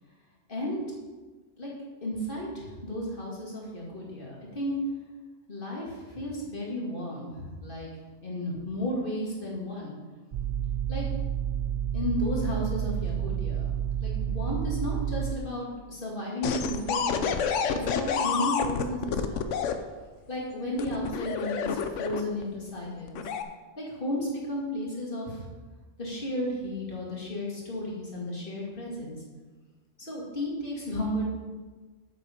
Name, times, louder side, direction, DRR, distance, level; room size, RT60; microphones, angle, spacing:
voice 1, 0.5-0.8 1.6-1.7 2.0-4.7 5.5-7.9 8.2-10.0 10.9-11.0 11.9-13.7 14.0-17.4 17.7-19.4 20.3-23.3 23.8-25.5 26.0-29.2 30.0-31.2, left 1 dB, 45° left, -3 dB, 2.4 m, -33 dB
sound 1, 10.3-15.3, right 9 dB, 60° right, 0.5 m, -30 dB
sound 2, 16.4-19.7 20.8-22.4 23.1-23.4, left 6 dB, 75° left, 1.0 m, -28 dB
8.3 x 7.9 x 5.2 m, 1.3 s
omnidirectional pair, 1.3 m